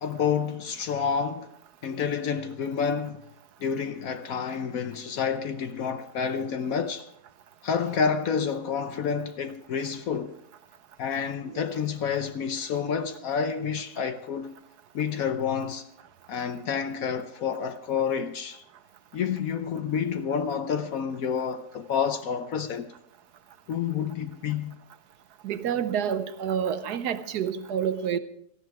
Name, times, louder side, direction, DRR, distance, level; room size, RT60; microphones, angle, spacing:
voice 1, 0.0-1.5 1.8-3.2 3.6-7.1 7.6-10.3 11.0-14.5 14.9-15.9 16.3-18.6 19.1-22.9 23.7-24.8, left 6 dB, 60° left, 1.0 m, -29 dB
voice 2, 25.4-28.2, right 8 dB, 70° right, 1.2 m, -28 dB
18.0 x 13.5 x 4.7 m
omnidirectional pair, 1.9 m